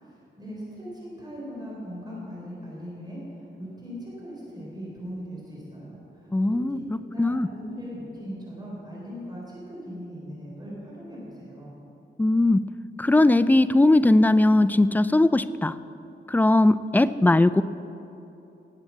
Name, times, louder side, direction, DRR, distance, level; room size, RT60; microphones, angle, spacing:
voice 1, 0.0-11.8, equal, 20° right, -6 dB, 3.9 m, -39 dB
voice 2, 6.3-7.5 12.2-12.6 13.0-15.7 16.3-17.6, left 2 dB, 10° left, 13 dB, 0.3 m, -19 dB
18.0 x 7.9 x 7.2 m, 3.0 s
wide cardioid pair, 135°, 19 cm